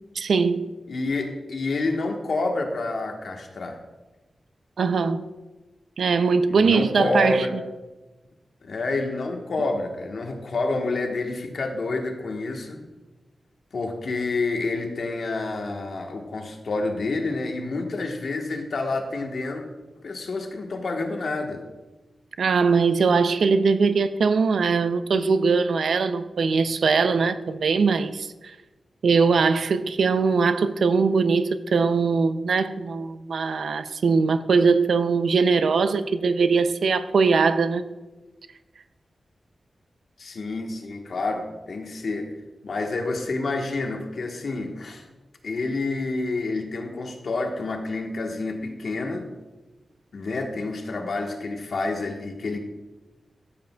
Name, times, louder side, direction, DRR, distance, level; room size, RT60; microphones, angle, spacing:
voice 1, 0.2-0.7 4.8-5.2 6.0-7.5 22.4-28.5 29.0-37.9, right 4 dB, 80° right, 0.4 m, -21 dB
voice 2, 0.9-3.8 6.5-7.5 8.6-12.8 13.7-19.6 20.0-21.6 40.2-42.3 42.6-45.0 45.4-49.3 50.1-52.6, left 3 dB, 65° left, 1.3 m, -28 dB
14.0 x 7.9 x 2.3 m
wide cardioid pair, 145°, 0 cm